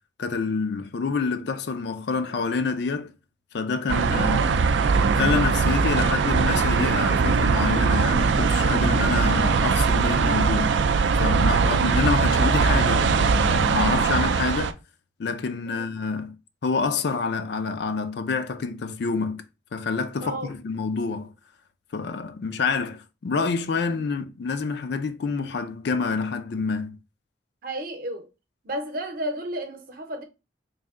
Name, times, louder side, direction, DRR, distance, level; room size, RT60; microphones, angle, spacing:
voice 1, 0.2-3.1 3.5-4.6 5.1-10.8 11.2-14.8 15.2-16.4 16.6-19.4 19.7-21.3 21.9-27.0, left 4 dB, 55° left, 0.4 m, -27 dB
sound 1, 3.9-14.7, right 5 dB, 65° right, 0.3 m, -21 dB
voice 2, 4.1-4.6 11.5-11.9 15.7-15.8 20.2-20.5 23.9-24.0 27.6-28.3 28.6-30.2, right 1 dB, 50° right, 0.7 m, -33 dB
3.2 x 2.6 x 3.6 m
head